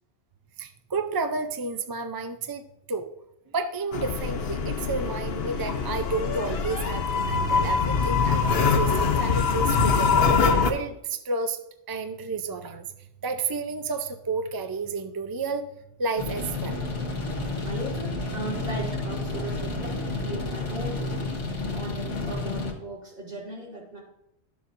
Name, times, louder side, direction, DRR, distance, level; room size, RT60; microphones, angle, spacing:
voice 1, 0.6-3.1 3.5-11.6 11.9-12.9 13.2-15.7 16.0-16.9, right 3 dB, 35° right, 7 dB, 0.3 m, -31 dB
sound 1, 3.9-10.7, left 5 dB, 60° left, 0.9 m, -23 dB
sound 2, 16.2-22.7, left 2 dB, 85° left, 2.0 m, -31 dB
voice 2, 17.6-24.0, right 1 dB, 50° right, -4 dB, 2.8 m, -37 dB
12.5 x 7.0 x 2.6 m, 0.81 s
omnidirectional pair, 1.2 m